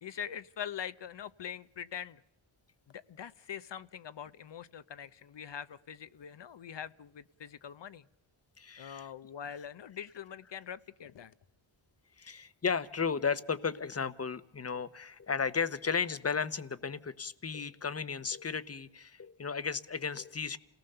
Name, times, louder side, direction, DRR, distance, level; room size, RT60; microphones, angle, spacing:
voice 1, 0.0-2.2 2.9-8.0 8.8-11.3, left 8 dB, 60° left, 0.8 m, -43 dB
voice 2, 8.6-9.1 12.2-20.6, left 5 dB, 30° left, 1.0 m, -34 dB
29.0 x 18.5 x 6.8 m
wide cardioid pair, 100°, 48 cm